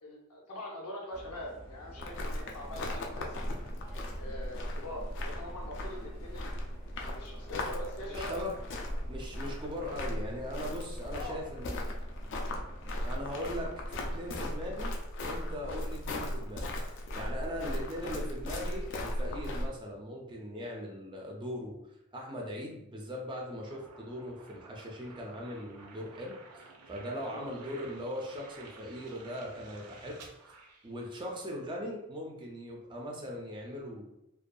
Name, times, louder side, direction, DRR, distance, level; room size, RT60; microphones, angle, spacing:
voice 1, 0.0-3.4 4.1-6.6 7.0-8.4 11.1-11.4 17.6-17.8 27.2-27.6, left 1 dB, 80° left, -2 dB, 0.7 m, -43 dB
sound 1, 1.1-14.4, equal, 20° left, 0.7 m, -50 dB
sound 2, 2.0-19.7, left 1 dB, 55° left, 0.4 m, -37 dB
voice 2, 8.1-8.6 9.1-11.8 13.0-21.8 22.1-30.2 30.8-34.0, equal, 20° right, -1 dB, 0.4 m, -40 dB
sound 3, 23.7-31.5, right 3 dB, 85° right, 0.5 m, -54 dB
2.6 x 2.2 x 2.2 m, 0.85 s
head